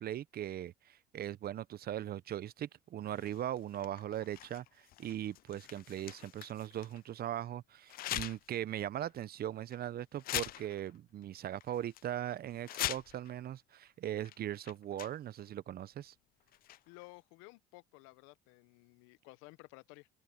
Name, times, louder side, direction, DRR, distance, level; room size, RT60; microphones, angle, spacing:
voice 1, 0.0-16.1, right 11 dB, 50° right, 0.8 m, -39 dB
sound 1, 3.1-7.0 7.9-8.6 9.0-9.1 9.7-9.9 10.2-11.2 11.6-12.0 12.5-13.3 14.2-14.4 14.6-15.4 16.5-17.1, left 14 dB, 45° left, 0.4 m, -42 dB
voice 2, 16.9-20.1, left 25 dB, 75° left, 0.8 m, -55 dB
open air
hypercardioid pair, 70°, 20 cm